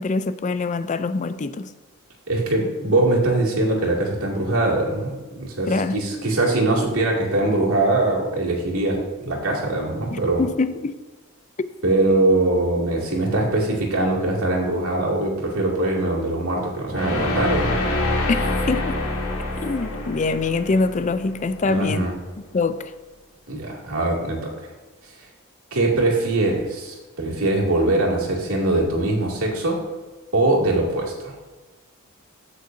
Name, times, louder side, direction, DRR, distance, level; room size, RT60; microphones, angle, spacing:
voice 1, 0.0-1.7 5.7-6.0 10.1-11.0 18.3-18.4 18.7-19.0 19.6-22.1 22.5-22.9, left 3 dB, 35° left, 0.4 m, -24 dB
voice 2, 2.3-10.4 11.8-17.8 21.7-22.1 23.5-24.5 25.7-29.8 30.3-31.4, right 2 dB, 80° right, 2.4 m, -22 dB
sound 1, 16.9-22.0, left 2 dB, 85° left, 2.0 m, -26 dB
15.0 x 6.4 x 2.7 m
head